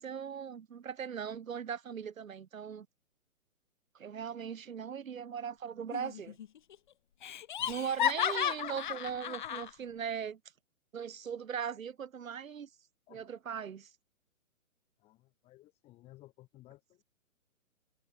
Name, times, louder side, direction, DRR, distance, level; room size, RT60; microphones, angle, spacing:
voice 1, 0.0-2.9 3.9-6.4 7.7-10.4 10.9-12.7 13.1-13.9, right 7 dB, 70° right, 2.0 m, -39 dB
Laughter, 5.9-6.5 6.7-6.8 7.2-9.7, left 10 dB, 35° left, 1.2 m, -33 dB
voice 2, 15.0-17.0, left 17 dB, 15° left, 3.0 m, -58 dB
hypercardioid pair, 165°, 43 cm